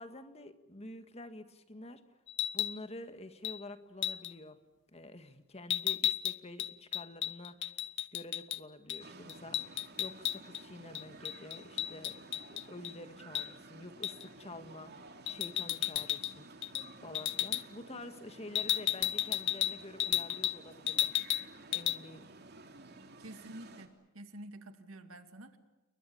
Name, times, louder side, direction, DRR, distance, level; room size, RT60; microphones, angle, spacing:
voice 1, 0.0-2.0 2.5-4.6 4.9-7.7 8.1-12.1 12.5-14.9 15.2-16.8 17.0-21.1 21.7-22.3, left 1 dB, 30° left, 9 dB, 1.8 m, -48 dB
sound 1, 2.3-2.8 3.4-3.6 4.0-4.3 5.7-8.6 8.9-9.0 9.3-10.6 10.9-12.9 13.3-13.5 14.0-14.3 15.3-16.3 16.6-16.9 17.1-17.6 18.5-20.6 20.9-21.5 21.7-22.0, left 12 dB, 60° left, 0.8 m, -33 dB
sound 2, 9.0-23.9, right 2 dB, 55° right, 2.9 m, -53 dB
voice 2, 23.2-25.6, right 1 dB, 90° right, 8 dB, 2.3 m, -49 dB
29.5 x 22.5 x 7.1 m, 1.1 s
head